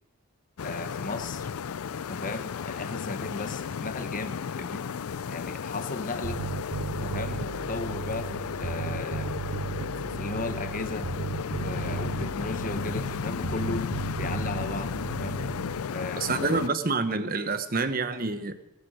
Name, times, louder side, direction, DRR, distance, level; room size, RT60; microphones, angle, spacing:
sound 1, 0.6-16.7, left 6 dB, 85° left, 0.4 m, -34 dB
voice 1, 0.6-1.5 2.0-4.8 5.3-6.4 6.9-9.6 10.0-11.1 11.5-13.9 14.2-15.4 15.9-16.3, left 3 dB, 35° left, 10 dB, 1.1 m, -36 dB
Bass guitar, 6.2-15.8, right 6 dB, 70° right, 0.5 m, -35 dB
voice 2, 16.2-18.5, right 3 dB, 40° right, 11 dB, 1.0 m, -27 dB
21.5 x 8.3 x 6.4 m, 0.95 s
head